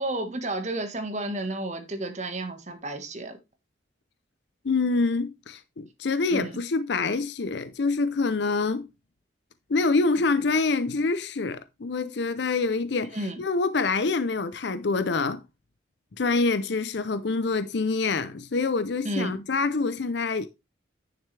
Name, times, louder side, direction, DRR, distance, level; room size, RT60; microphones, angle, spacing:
voice 1, 0.0-3.4 6.3-6.6 13.1-13.4 19.0-19.4, right 2 dB, 35° right, 1.4 m, -32 dB
voice 2, 4.6-8.9 9.7-15.4 16.2-20.5, left 3 dB, 65° left, 0.5 m, -26 dB
10.0 x 6.6 x 3.3 m
head